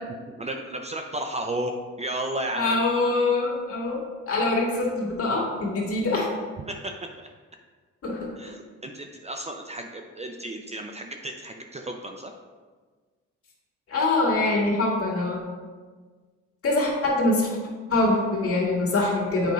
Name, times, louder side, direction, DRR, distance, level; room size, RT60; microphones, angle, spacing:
voice 1, 0.3-2.8 6.7-7.3 8.4-12.3, right 1 dB, 20° right, 3 dB, 0.5 m, -33 dB
voice 2, 2.6-6.3 8.0-8.3 13.9-15.4 16.6-17.5 17.9-19.5, left 2 dB, 50° left, -3 dB, 2.1 m, -24 dB
7.7 x 5.1 x 3.2 m, 1.4 s
cardioid pair, 90°, 30 cm